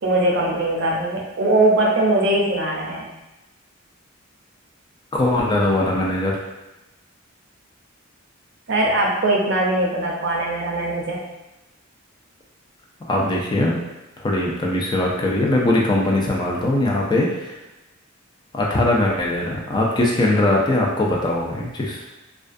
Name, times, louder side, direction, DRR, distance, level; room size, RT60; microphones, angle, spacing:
voice 1, 0.0-3.1 8.7-11.2, right 1 dB, 60° right, -1 dB, 0.5 m, -20 dB
voice 2, 5.2-6.4 13.1-13.8 14.2-17.5 18.5-22.0, left 1 dB, 20° left, -2 dB, 0.3 m, -20 dB
2.3 x 2.3 x 2.5 m, 1.0 s
head